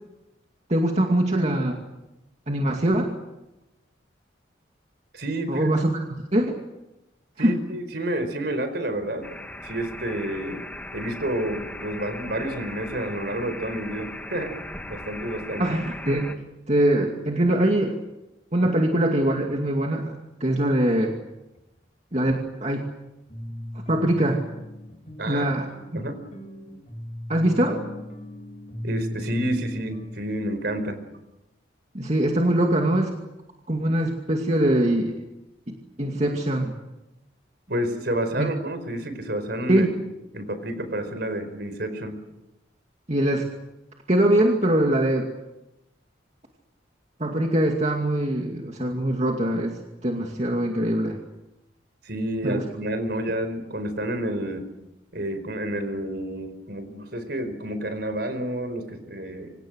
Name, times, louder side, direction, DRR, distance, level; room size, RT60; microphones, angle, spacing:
voice 1, 0.7-1.8 2.5-3.1 5.5-5.9 6.2-6.6 7.4-7.5 15.6-16.4 16.7-18.0 18.5-21.1 22.1-22.8 23.9-24.4 25.3-25.7 25.9-26.0 27.3-27.8 31.9-33.1 33.7-35.2 35.7-36.7 38.3-38.5 39.7-39.9 43.1-43.5 44.1-45.3 47.2-51.2 52.4-52.6, right 1 dB, 35° right, 1 dB, 2.4 m, -23 dB
voice 2, 5.1-5.7 7.4-9.3 9.6-10.6 10.9-14.5 14.9-15.8 25.2-25.5 25.9-26.2 28.8-31.0 37.7-39.9 40.3-42.2 52.0-54.7 55.1-59.5, right 1 dB, 60° right, 10 dB, 4.8 m, -29 dB
sound 1, 9.2-16.3, left 1 dB, 10° left, 1.8 m, -38 dB
sound 2, 21.5-21.6 22.1-22.2 22.7-22.8 23.3-30.1, left 1 dB, 35° left, 7.0 m, -37 dB
28.0 x 25.5 x 6.5 m, 0.96 s
head